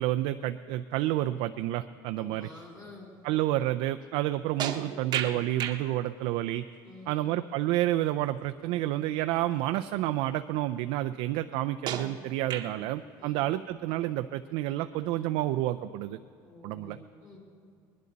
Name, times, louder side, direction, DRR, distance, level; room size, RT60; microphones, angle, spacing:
voice 1, 0.0-2.5 3.2-6.7 7.1-16.2 16.6-17.0, right 14 dB, 70° right, 9 dB, 0.4 m, -29 dB
voice 2, 2.1-3.1 6.8-7.4 13.2-13.4 16.4-17.4, left 2 dB, 30° left, -3 dB, 4.1 m, -49 dB
sound 1, 4.6-5.8 8.7-8.9 9.5-9.6 11.9-12.9, right 9 dB, 45° right, 0.9 m, -34 dB
20.0 x 11.0 x 4.0 m, 2.1 s
cardioid pair, 125°, 10 cm